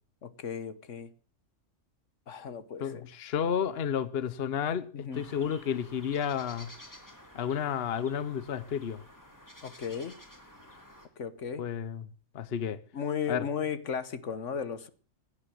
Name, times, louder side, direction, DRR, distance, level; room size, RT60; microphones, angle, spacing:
voice 1, 0.2-1.1 2.3-3.0 4.9-5.2 9.6-10.1 11.2-11.6 12.9-14.9, left 7 dB, 75° left, 1.5 m, -35 dB
voice 2, 2.8-6.7 7.3-9.0 11.6-12.0 12.3-12.8 13.3-13.5, left 8 dB, 55° left, 1.1 m, -31 dB
sound 1, 5.1-11.1, left 1 dB, 15° left, 3.1 m, -52 dB
16.5 x 9.9 x 7.6 m
omnidirectional pair, 1.3 m